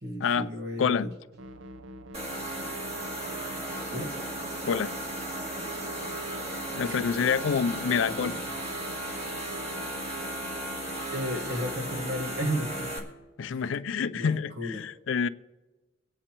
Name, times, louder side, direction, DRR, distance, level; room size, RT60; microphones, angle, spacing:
voice 1, 0.0-1.1 3.9-4.1 6.8-6.9 8.1-8.4 11.1-12.9 13.4-13.6 14.1-14.9, equal, 55° right, 5 dB, 1.4 m, -34 dB
sound 1, 1.4-12.9, equal, 85° right, 0.7 m, -45 dB
sound 2, 2.1-13.0, right 1 dB, 35° right, 1.9 m, -35 dB
voice 2, 4.6-4.9 6.7-8.3 13.4-15.3, left 6 dB, 85° left, 15 dB, 0.4 m, -27 dB
24.0 x 8.7 x 3.0 m, 1.2 s
head